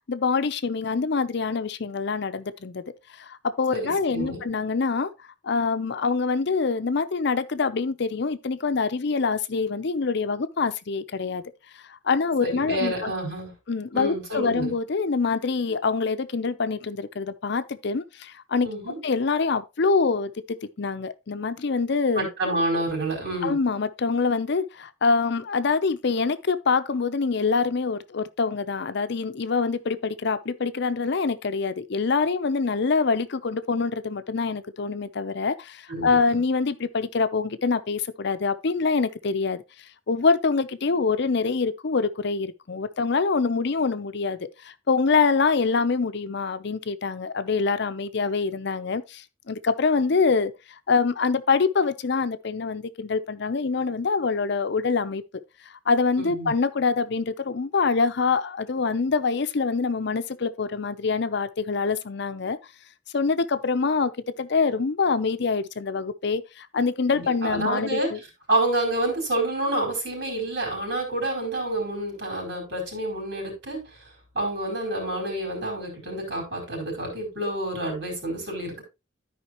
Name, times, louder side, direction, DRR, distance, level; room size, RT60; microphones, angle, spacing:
voice 1, 0.1-2.8 3.2-5.1 5.4-11.4 11.7-13.1 13.7-18.7 19.0-22.3 23.4-39.6 40.1-50.5 50.9-55.2 55.9-62.6 63.1-68.2, left 4 dB, 65° left, 0.6 m, -25 dB
voice 2, 3.7-4.4 12.4-13.5 13.9-14.7 18.6-19.0 22.2-23.6 35.9-36.4 56.2-56.5 67.1-68.1 68.5-73.8 74.3-78.8, right 1 dB, 65° right, 4.7 m, -28 dB
13.0 x 5.1 x 2.9 m
head